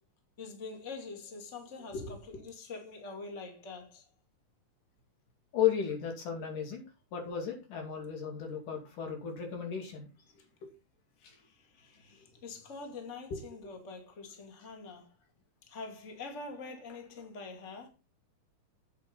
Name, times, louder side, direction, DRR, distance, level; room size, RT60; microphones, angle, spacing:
voice 1, 0.4-4.0 11.4-15.1 15.6-17.9, left 3 dB, 25° left, 2.3 m, -45 dB
voice 2, 5.5-6.8 7.1-10.1 10.6-10.7 13.3-13.4, left 8 dB, 80° left, 4.1 m, -34 dB
10.5 x 8.3 x 4.0 m
omnidirectional pair, 3.6 m